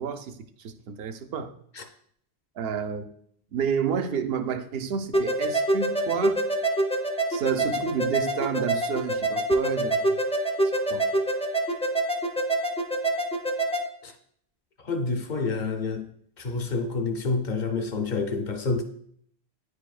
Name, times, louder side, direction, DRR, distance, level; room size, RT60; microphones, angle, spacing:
voice 1, 0.0-1.5 2.6-3.1 3.5-6.4 7.3-10.2 10.9-11.0, right 7 dB, 70° right, 0.7 m, -30 dB
sound 1, 5.1-13.9, right 1 dB, 10° left, 0.3 m, -26 dB
voice 2, 14.8-16.1 16.4-18.8, left 4 dB, 50° left, 0.8 m, -28 dB
9.5 x 4.8 x 2.4 m
omnidirectional pair, 1.1 m